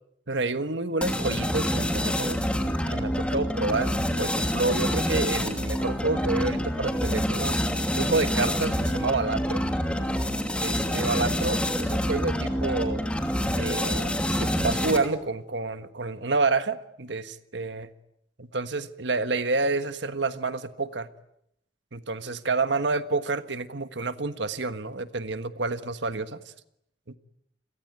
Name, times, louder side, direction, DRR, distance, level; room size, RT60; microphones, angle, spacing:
voice 1, 0.3-2.4 2.9-3.9 4.2-7.6 7.9-9.6 10.6-13.0 13.5-17.9 18.4-21.1 21.9-26.4 27.1-27.2, right 3 dB, 80° right, 11 dB, 1.5 m, -29 dB
sound 1, 1.0-15.2, equal, 5° left, 2.7 m, -27 dB
29.5 x 22.0 x 9.2 m, 0.78 s
head